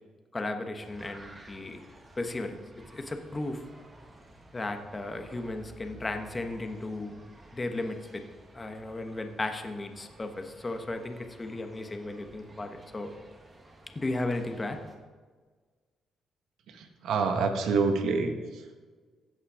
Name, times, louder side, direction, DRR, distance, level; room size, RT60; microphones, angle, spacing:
voice 1, 0.3-1.8 2.2-2.6 2.9-3.6 4.5-7.1 7.5-8.2 8.5-13.1 13.9-14.8, left 2 dB, 25° left, 6 dB, 1.2 m, -35 dB
sound 1, 0.8-14.9, right 2 dB, 25° right, 1.9 m, -53 dB
voice 2, 16.7-18.8, right 4 dB, 80° right, 5 dB, 1.5 m, -28 dB
16.0 x 5.6 x 4.9 m, 1.5 s
cardioid pair, 90°, 0 cm